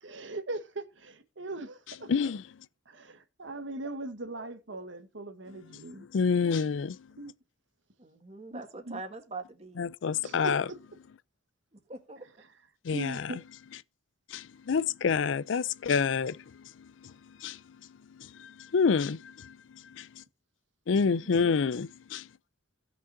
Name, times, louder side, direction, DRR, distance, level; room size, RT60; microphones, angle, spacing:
voice 1, 0.0-2.1 2.9-6.1 7.2-7.3 8.5-9.0 10.2-10.8 12.9-13.4, right 2 dB, 80° right, 1.4 m, -40 dB
voice 2, 2.1-2.4 6.1-7.0 9.8-10.6 12.9-13.2 14.3-16.4 17.4-17.6 18.4-19.5 20.0-20.1 20.9-22.2, left 5 dB, 90° left, 0.4 m, -27 dB
voice 3, 8.0-9.8 11.7-12.3 21.0-21.6, right 3 dB, 35° right, 2.0 m, -44 dB
17.0 x 6.1 x 2.7 m
head